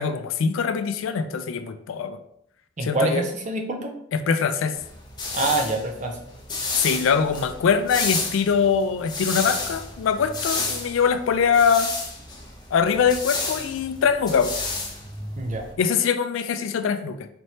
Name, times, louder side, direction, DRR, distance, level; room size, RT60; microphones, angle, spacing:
voice 1, 0.0-2.2 2.8-3.2 4.1-4.8 6.8-11.9 12.7-14.5 15.8-17.3, left 6 dB, 75° left, 9 dB, 0.4 m, -23 dB
voice 2, 2.8-3.9 5.3-6.2 15.4-15.7, right 2 dB, 40° right, 3 dB, 0.6 m, -25 dB
sound 1, 4.8-15.7, left 3 dB, 20° left, 0.7 m, -31 dB
4.2 x 3.2 x 2.8 m, 0.74 s
head